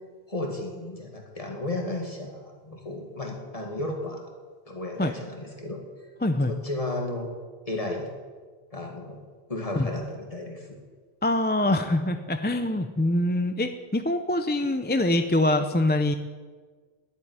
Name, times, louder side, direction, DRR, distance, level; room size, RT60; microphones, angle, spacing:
voice 1, 0.3-4.3 4.7-5.8 6.5-7.3 7.7-8.1 8.7-9.2 9.5-10.7, left 2 dB, 35° left, 2 dB, 2.2 m, -33 dB
voice 2, 6.2-6.5 9.8-9.9 11.2-16.1, left 1 dB, 15° left, 8 dB, 0.5 m, -24 dB
11.0 x 9.1 x 9.7 m, 1.5 s
omnidirectional pair, 1.1 m